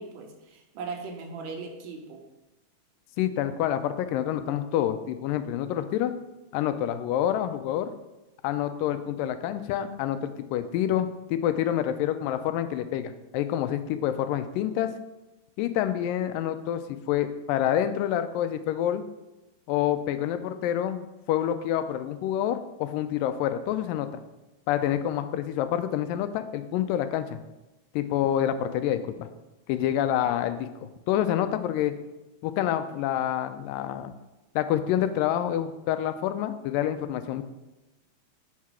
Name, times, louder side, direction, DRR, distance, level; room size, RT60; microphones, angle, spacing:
voice 1, 0.0-2.2, right 4 dB, 80° right, 3 dB, 2.4 m, -38 dB
voice 2, 3.2-6.1 6.5-7.9 8.4-14.9 15.6-19.0 19.7-24.2 24.7-27.4 27.9-29.3 29.7-32.0 32.4-34.1 34.6-37.4, left 11 dB, 90° left, 10 dB, 2.2 m, -27 dB
5.9 x 4.7 x 5.7 m, 1.0 s
omnidirectional pair, 3.8 m